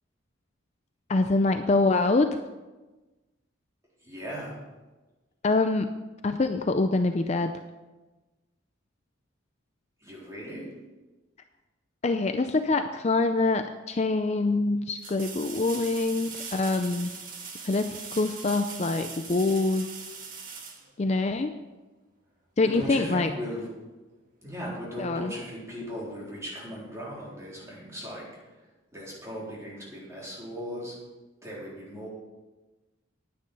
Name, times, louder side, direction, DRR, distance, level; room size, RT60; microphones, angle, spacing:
voice 1, 1.1-2.3 5.4-5.9 6.2-7.5 12.0-17.1 17.6-19.9 21.0-21.5 22.6-23.3 25.0-25.3, left 3 dB, 35° left, 8 dB, 0.4 m, -25 dB
voice 2, 4.0-4.6 10.0-10.7 22.6-23.7 24.4-28.3 28.9-31.0 31.4-32.1, equal, 15° right, -6 dB, 3.7 m, -37 dB
sound 1, 13.6-13.7 15.0-21.6 24.5-24.6, right 5 dB, 45° right, 1.6 m, -41 dB
9.9 x 9.6 x 5.4 m, 1.2 s
head